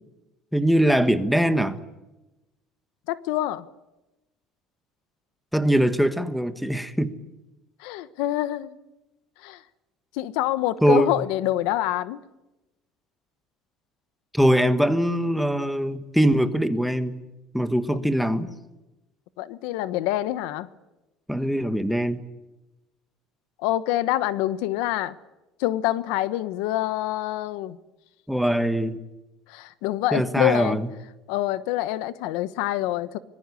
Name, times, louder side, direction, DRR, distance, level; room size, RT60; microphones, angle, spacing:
voice 1, 0.5-1.8 5.5-7.2 10.8-11.2 14.3-17.2 17.5-18.5 21.3-22.2 28.3-29.0 30.1-30.9, equal, ahead, 1.3 m, -22 dB
voice 2, 3.1-3.6 7.8-8.7 9.4-9.6 10.1-12.2 19.4-20.7 23.6-25.2 25.6-27.8 29.5-30.8 31.3-33.2, left 14 dB, 80° left, 1.2 m, -26 dB
25.0 x 21.0 x 8.5 m
cardioid pair, 155°, 0 cm